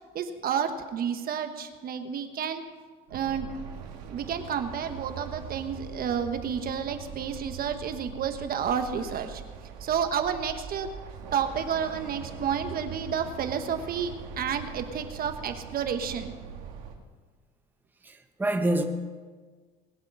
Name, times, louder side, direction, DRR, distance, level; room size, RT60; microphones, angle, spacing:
voice 1, 0.1-2.6 3.1-3.6 4.1-9.4 9.8-10.9 11.3-16.3, right 7 dB, 45° right, 8 dB, 1.3 m, -30 dB
sound 1, 3.1-17.0, right 7 dB, 85° right, 2.1 m, -42 dB
voice 2, 18.0-18.8, right 1 dB, 10° right, 5 dB, 1.0 m, -27 dB
20.5 x 8.2 x 5.7 m, 1.4 s
supercardioid pair, 105°, 21 cm